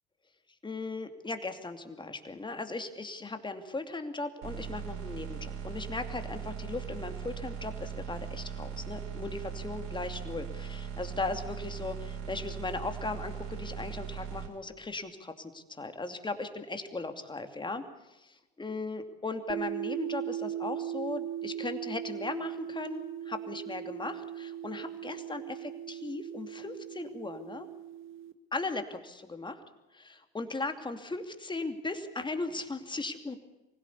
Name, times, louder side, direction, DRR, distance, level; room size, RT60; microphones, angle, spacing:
voice 1, 0.6-17.8 18.1-18.3 18.6-27.7 28.5-29.6 29.9-33.4, left 3 dB, 15° left, 7 dB, 2.6 m, -37 dB
sound 1, 4.4-14.5, right 7 dB, 65° right, 5.5 m, -39 dB
sound 2, 19.5-28.3, right 11 dB, 40° right, 1.9 m, -38 dB
25.0 x 16.5 x 8.4 m, 1.1 s
hypercardioid pair, 85°, 30 cm